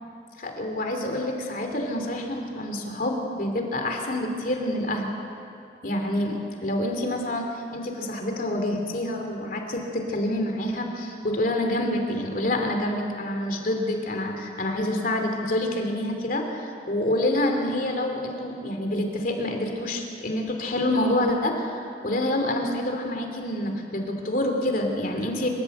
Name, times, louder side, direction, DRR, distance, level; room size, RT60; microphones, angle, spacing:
voice 1, 0.4-5.1 5.8-25.5, left 1 dB, 50° left, 3 dB, 2.9 m, -27 dB
26.5 x 13.5 x 7.9 m, 2.7 s
head